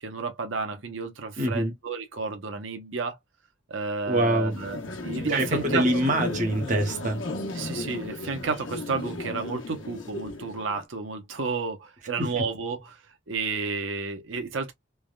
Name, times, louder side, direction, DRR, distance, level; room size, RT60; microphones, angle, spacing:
voice 1, 0.0-3.2 3.7-6.0 7.5-14.7, right 4 dB, 85° right, 0.8 m, -32 dB
voice 2, 1.4-1.7 4.1-4.5 5.3-7.2, right 1 dB, 40° right, 0.9 m, -24 dB
sound 1, 4.5-10.8, left 2 dB, 90° left, 0.9 m, -35 dB
3.4 x 2.1 x 2.3 m
head